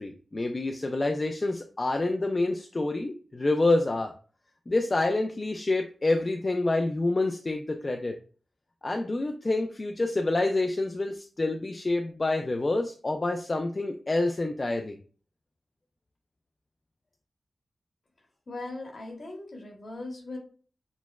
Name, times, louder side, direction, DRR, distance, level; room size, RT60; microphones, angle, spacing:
voice 1, 0.0-4.1 4.7-8.1 8.8-15.0, left 2 dB, 40° left, 4 dB, 0.4 m, -27 dB
voice 2, 18.5-20.4, left 2 dB, 65° left, 0 dB, 1.2 m, -39 dB
6.1 x 2.0 x 2.3 m, 0.40 s
cardioid pair, 60°, 0 cm